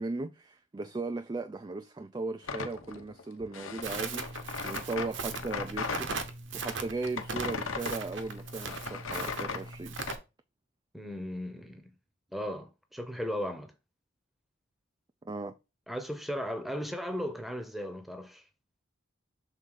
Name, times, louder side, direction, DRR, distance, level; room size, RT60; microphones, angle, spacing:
voice 1, 0.0-6.1 6.5-10.0 15.2-15.5, right 3 dB, 20° right, 0.3 m, -37 dB
sound 1, 2.4-6.2 6.6-10.2, left 5 dB, 80° left, 1.0 m, -37 dB
Crackle, 3.8-10.1, right 4 dB, 60° right, 1.0 m, -39 dB
voice 2, 10.9-11.9 12.3-13.7 15.9-18.4, equal, ahead, 0.8 m, -36 dB
6.4 x 3.9 x 3.8 m
head